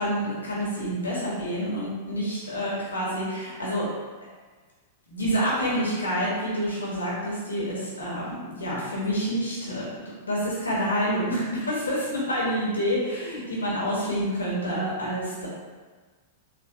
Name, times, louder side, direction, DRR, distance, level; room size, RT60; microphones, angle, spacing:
voice 1, 0.0-3.9 5.1-15.5, equal, 90° left, -6 dB, 1.4 m, -28 dB
3.9 x 2.9 x 2.9 m, 1.4 s
hypercardioid pair, 105°, 0 cm